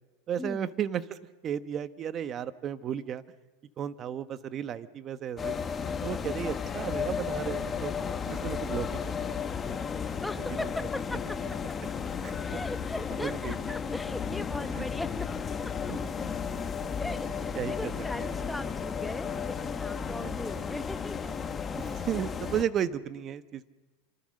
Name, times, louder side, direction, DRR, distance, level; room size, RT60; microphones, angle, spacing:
voice 1, 0.3-1.2 1.4-3.2 3.8-5.6 6.0-7.9 8.3-9.4 10.6-10.7 12.2-12.4 13.2-13.6 14.7-14.9 15.9-16.0 17.5-17.9 18.2-18.3 20.1-20.4 21.8-23.7, right 9 dB, 35° right, 12 dB, 1.2 m, -34 dB
sound 1, 5.4-22.6, left 6 dB, 20° left, 1.5 m, -34 dB
voice 2, 10.1-11.6 12.4-15.9 17.0-21.4, left 1 dB, 5° left, 10 dB, 1.0 m, -39 dB
28.5 x 25.5 x 6.6 m, 1.2 s
supercardioid pair, 135°, 0 cm